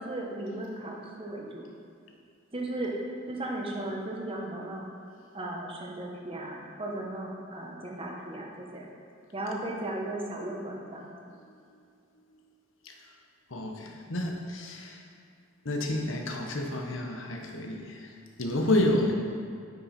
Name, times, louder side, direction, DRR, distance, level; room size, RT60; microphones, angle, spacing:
voice 1, 0.0-1.7 2.5-2.9 3.3-4.9 5.3-8.9 9.3-11.1 18.9-19.1, right 1 dB, 30° right, -1 dB, 1.1 m, -36 dB
voice 2, 13.5-15.1 15.6-19.1, left 1 dB, 70° left, 2 dB, 1.0 m, -30 dB
9.4 x 5.8 x 4.3 m, 2.4 s
head